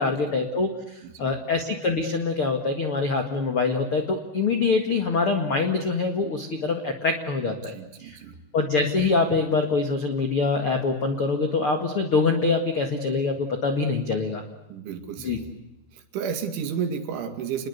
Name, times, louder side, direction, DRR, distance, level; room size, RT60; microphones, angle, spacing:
voice 1, 0.0-7.7 8.0-8.2 8.5-14.4 15.2-15.4, left 4 dB, 60° left, 5 dB, 1.4 m, -24 dB
voice 2, 1.0-1.4 7.4-8.4 14.7-15.6 15.9-17.7, right 7 dB, 70° right, 7 dB, 4.5 m, -32 dB
29.0 x 21.5 x 8.2 m, 0.91 s
omnidirectional pair, 5.8 m